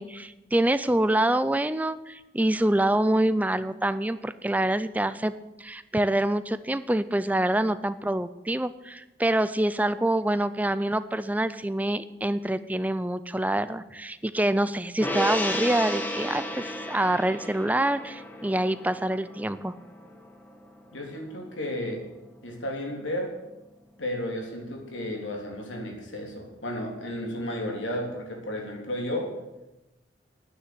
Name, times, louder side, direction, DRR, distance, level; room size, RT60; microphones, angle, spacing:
voice 1, 0.0-5.3 5.6-19.7, right 1 dB, 10° right, 13 dB, 0.4 m, -26 dB
Gong, 15.0-21.6 22.0-22.1, equal, 10° left, 1.3 m, -34 dB
voice 2, 20.9-22.1 22.4-23.3 24.0-29.3, left 1 dB, 90° left, 1 dB, 3.4 m, -33 dB
9.9 x 9.4 x 9.8 m, 0.99 s
head